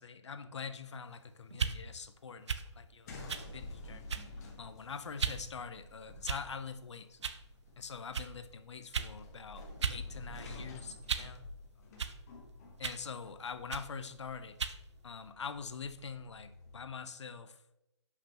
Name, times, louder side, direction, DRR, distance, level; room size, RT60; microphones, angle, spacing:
voice 1, 0.0-4.1 4.6-7.2 7.8-11.4 11.8-12.0 12.8-14.6 15.0-17.6, left 5 dB, 70° left, 10 dB, 0.8 m, -44 dB
sound 1, 1.5-1.8 2.5-2.7 3.3-3.5 4.1-4.4 5.2-5.4 6.2-6.6 7.2-7.4 8.1-8.3 8.9-9.1 9.8-10.0 10.4-11.4 12.0-12.2 12.8-13.0 13.7-13.9 14.6-14.8, right 6 dB, 70° right, 0.6 m, -36 dB
elevator sequence, 3.1-16.8, left 2 dB, 35° left, 1.4 m, -50 dB
9.9 x 5.9 x 3.0 m, 0.91 s
hypercardioid pair, 155°, 15 cm